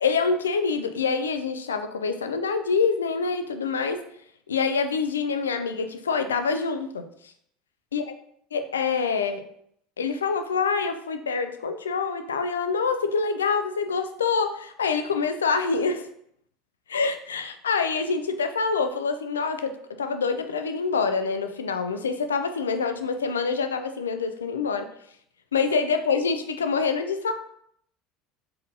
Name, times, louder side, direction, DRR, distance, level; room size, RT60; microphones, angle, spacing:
voice 1, 0.0-4.0 4.5-7.3 7.9-8.0 8.5-9.4 10.0-16.1 16.9-24.9 25.5-27.3, left 5 dB, 90° left, 8 dB, 0.4 m, -26 dB
4.1 x 3.8 x 2.7 m, 0.69 s
hypercardioid pair, 75°, 0 cm